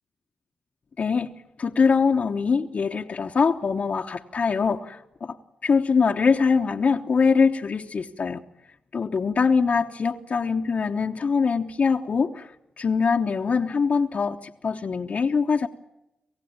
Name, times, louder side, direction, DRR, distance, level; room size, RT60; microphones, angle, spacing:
voice 1, 1.0-1.3 1.6-5.4 5.6-8.4 8.9-12.5 12.8-15.7, left 5 dB, 55° left, 2 dB, 1.1 m, -23 dB
27.5 x 15.5 x 8.7 m, 0.90 s
supercardioid pair, 50°, 3 cm